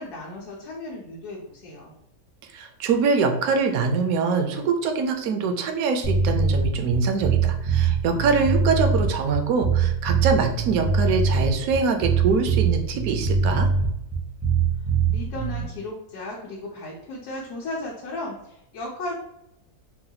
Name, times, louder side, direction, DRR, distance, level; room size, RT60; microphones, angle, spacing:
voice 1, 0.0-1.9 15.1-19.1, left 2 dB, 80° left, -3 dB, 1.2 m, -35 dB
voice 2, 2.5-13.7, right 5 dB, 75° right, 5 dB, 1.0 m, -24 dB
sound 1, 6.0-15.6, right 5 dB, 20° right, 0.4 m, -22 dB
4.0 x 2.2 x 2.7 m, 0.84 s
omnidirectional pair, 1.6 m